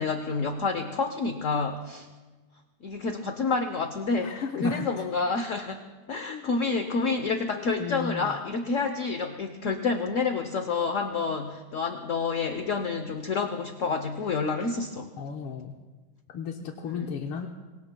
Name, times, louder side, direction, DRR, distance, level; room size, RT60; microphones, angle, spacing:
voice 1, 0.0-2.1 2.8-5.8 6.1-15.1 16.9-17.2, left 4 dB, 55° left, 7 dB, 0.9 m, -29 dB
voice 2, 4.2-5.0 6.3-6.5 7.7-8.4 15.1-15.7 16.3-17.5, left 6 dB, 85° left, 2 dB, 1.8 m, -34 dB
25.0 x 23.5 x 2.3 m, 1.3 s
omnidirectional pair, 2.3 m